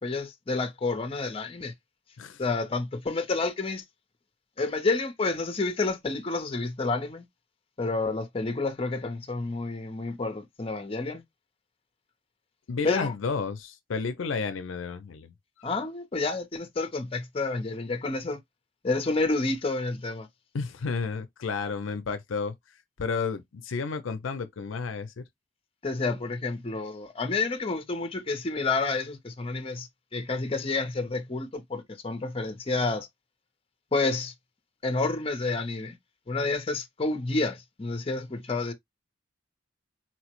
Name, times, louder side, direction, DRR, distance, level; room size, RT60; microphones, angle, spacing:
voice 1, 0.0-1.7 2.4-3.8 4.6-7.3 7.8-11.2 12.8-13.1 15.6-18.4 18.8-20.3 25.8-33.1 33.9-34.3 34.8-36.0 36.3-38.7, left 3 dB, 30° left, 0.6 m, -29 dB
voice 2, 12.7-15.7 20.5-22.5 23.0-25.2, left 4 dB, 80° left, 0.5 m, -32 dB
4.2 x 2.0 x 2.9 m
head